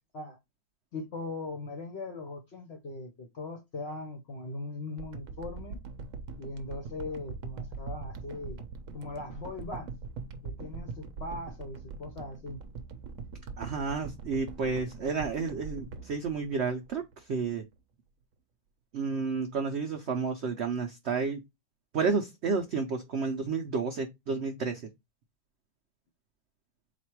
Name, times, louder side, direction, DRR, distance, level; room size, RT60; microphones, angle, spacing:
voice 1, 0.9-5.8 6.4-8.6 8.9-9.9 10.4-12.6, left 2 dB, 55° left, 0.7 m, -40 dB
sound 1, 5.0-17.2 17.7-17.8, right 4 dB, 65° right, 0.9 m, -42 dB
voice 2, 13.6-17.6 18.9-21.4 21.9-24.8, right 5 dB, 90° right, 0.5 m, -31 dB
4.1 x 2.5 x 4.4 m
omnidirectional pair, 1.9 m